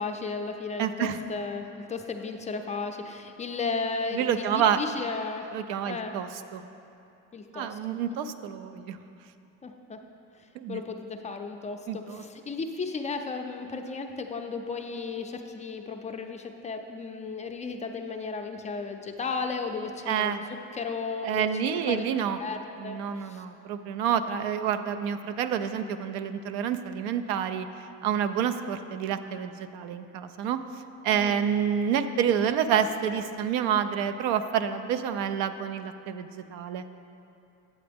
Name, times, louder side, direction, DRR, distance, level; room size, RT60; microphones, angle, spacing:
voice 1, 0.0-5.5 5.8-6.2 7.3-7.8 9.6-10.0 10.7-20.4 20.7-22.0 22.4-23.4 31.1-31.4, left 4 dB, 20° left, 5 dB, 0.4 m, -34 dB
voice 2, 0.8-1.2 4.1-4.8 5.5-6.6 7.5-9.0 10.5-10.8 11.9-12.2 20.1-20.4 21.2-22.4 22.8-27.7 28.0-30.6 31.0-36.8, right 8 dB, 85° right, 10 dB, 0.5 m, -28 dB
8.3 x 7.7 x 3.5 m, 2.7 s
cardioid pair, 110°, 35 cm